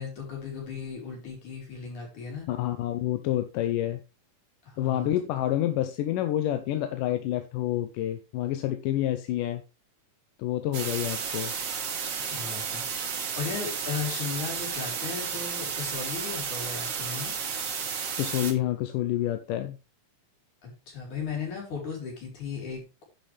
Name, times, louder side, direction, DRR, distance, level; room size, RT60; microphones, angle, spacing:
voice 1, 0.0-2.5 4.6-5.1 12.2-12.8 13.4-17.3 20.6-23.0, left 6 dB, 65° left, -1 dB, 5.7 m, -36 dB
voice 2, 2.5-4.0 4.8-9.6 10.4-11.5 18.2-19.8, left 13 dB, 85° left, 8 dB, 2.4 m, -28 dB
sound 1, 10.7-18.5, right 6 dB, 50° right, 2.5 m, -32 dB
10.5 x 7.8 x 3.5 m, 0.28 s
omnidirectional pair, 3.7 m